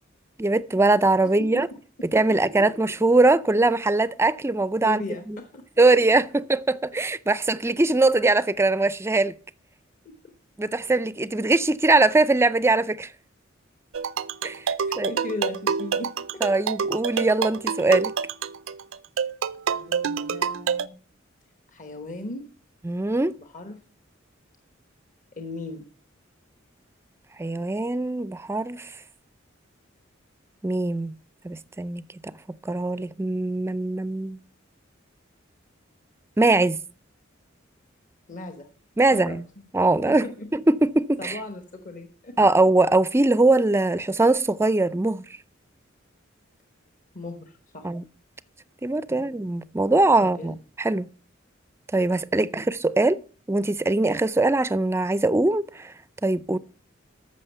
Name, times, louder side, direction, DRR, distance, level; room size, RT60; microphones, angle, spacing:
voice 1, 0.4-1.7 2.1-5.0 5.3-5.4 5.8-9.3 10.6-13.1 14.4-14.6 14.9-15.1 16.4-18.2 22.8-23.3 27.4-28.9 30.6-31.1 31.4-32.0 32.7-34.4 36.4-36.8 39.0-39.4 39.7-40.2 40.5-41.4 42.4-45.2 47.8-48.0 48.8-51.1 51.9-53.2 53.5-55.9 56.2-56.6, right 2 dB, 15° right, 0.4 m, -21 dB
voice 2, 1.4-2.7 4.8-5.7 10.0-10.1 14.8-16.6 19.7-21.0 21.7-22.5 23.4-23.8 25.4-25.9 38.3-38.7 39.1-39.7 40.1-40.5 41.2-42.4 47.1-47.9 49.1-49.3 50.2-50.6 52.4-52.6, left 2 dB, 40° left, 1.0 m, -38 dB
sound 1, 13.9-20.9, right 6 dB, 75° right, 0.5 m, -27 dB
14.0 x 6.3 x 5.5 m
head